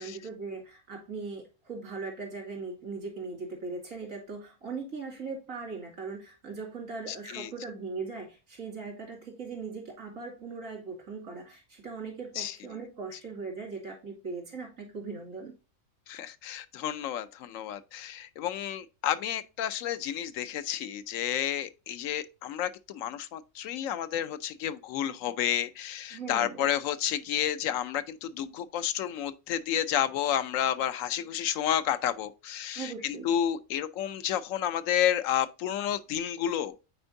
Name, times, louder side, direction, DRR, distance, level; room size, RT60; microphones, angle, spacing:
voice 1, 0.0-15.5 26.1-26.7 32.7-33.3, right 4 dB, 85° right, 2.9 m, -39 dB
voice 2, 7.1-7.5 12.4-12.5 16.1-36.8, left 10 dB, 80° left, 1.0 m, -31 dB
8.7 x 4.5 x 2.6 m
omnidirectional pair, 1.4 m